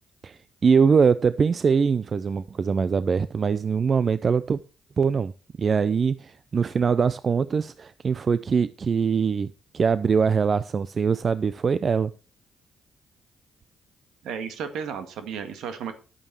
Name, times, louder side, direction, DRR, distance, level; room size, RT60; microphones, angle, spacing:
voice 1, 0.2-4.6 5.0-5.3 5.6-12.1, right 6 dB, 50° right, 0.5 m, -22 dB
voice 2, 14.2-15.9, right 7 dB, 75° right, 1.8 m, -33 dB
11.0 x 8.7 x 4.7 m
supercardioid pair, 50°, 0 cm